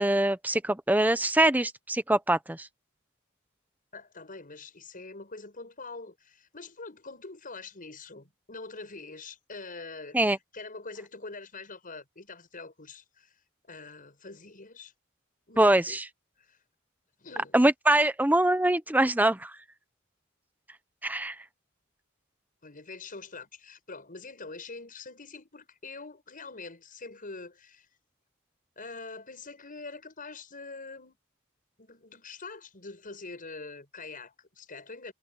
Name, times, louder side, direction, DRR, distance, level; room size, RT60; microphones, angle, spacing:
voice 1, 0.0-2.7 10.1-10.4 15.6-16.0 17.5-19.5 21.0-21.4, right 1 dB, 10° right, 0.9 m, -23 dB
voice 2, 3.9-10.2 10.5-13.3 13.7-14.9 15.5-16.0 16.5-16.6 17.2-17.6 22.6-27.9 28.8-31.2 31.8-35.1, left 3 dB, 40° left, 6.9 m, -44 dB
head